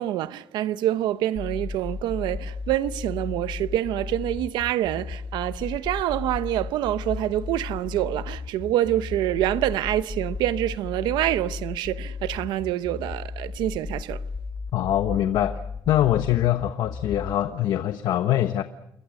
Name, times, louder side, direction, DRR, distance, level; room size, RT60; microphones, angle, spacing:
voice 1, 0.0-14.2, right 13 dB, 90° right, 0.9 m, -26 dB
sound 1, 1.3-17.3, left 4 dB, 25° left, 1.6 m, -34 dB
voice 2, 14.7-18.6, left 12 dB, 70° left, 1.1 m, -23 dB
29.0 x 22.5 x 6.5 m
cardioid pair, 135°, 7 cm